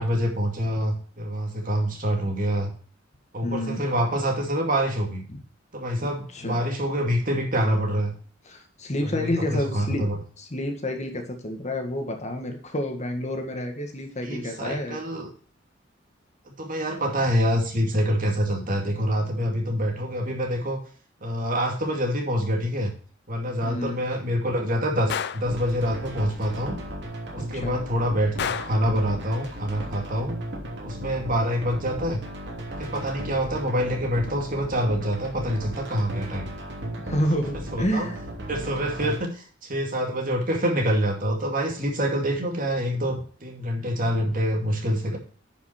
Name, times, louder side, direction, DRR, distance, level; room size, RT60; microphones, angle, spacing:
voice 1, 0.0-2.7 3.3-5.3 5.7-8.1 9.1-10.2 14.2-15.3 16.5-20.8 21.2-22.9 23.3-26.8 27.3-30.3 30.8-32.2 32.8-36.4 37.7-38.1 38.5-45.2, equal, 45° right, 2 dB, 2.4 m, -26 dB
voice 2, 3.4-3.9 5.3-5.4 6.3-6.6 8.4-10.1 10.4-15.0 23.6-24.1 27.4-27.8 37.0-38.2, left 1 dB, 35° left, 4 dB, 1.7 m, -29 dB
Gunshot gunfire, 25.1-25.5 28.4-28.9, left 7 dB, 60° left, 0.5 m, -29 dB
sound 1, 25.5-39.2, right 1 dB, 60° right, 3.0 m, -36 dB
10.0 x 5.8 x 4.4 m, 0.43 s
head